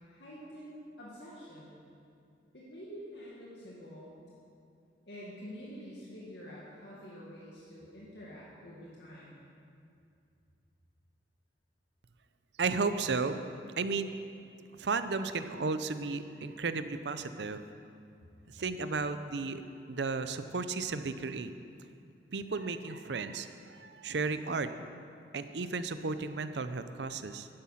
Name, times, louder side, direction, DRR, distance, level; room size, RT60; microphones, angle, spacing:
voice 1, 0.1-1.7 2.5-4.1 5.1-9.4, equal, 70° left, -6 dB, 2.0 m, -47 dB
voice 2, 12.6-13.4 13.8-14.2 14.8-17.6 18.5-19.6 19.9-21.5 22.3-24.7 25.3-27.5, right 4 dB, 70° right, 10 dB, 0.6 m, -34 dB
11.5 x 10.5 x 5.7 m, 2.4 s
head